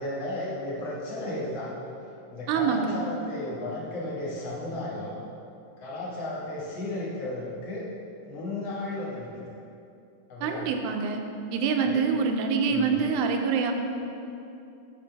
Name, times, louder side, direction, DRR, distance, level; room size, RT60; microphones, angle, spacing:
voice 1, 0.0-1.7 2.3-5.2 5.8-7.8 8.2-9.3 10.3-10.7 11.8-12.1 12.7-13.0, left 1 dB, 50° left, -7 dB, 1.8 m, -34 dB
voice 2, 2.5-3.0 10.4-11.2 11.5-13.7, right 5 dB, 85° right, 4 dB, 2.1 m, -25 dB
11.5 x 3.9 x 3.4 m, 2.7 s
omnidirectional pair, 3.5 m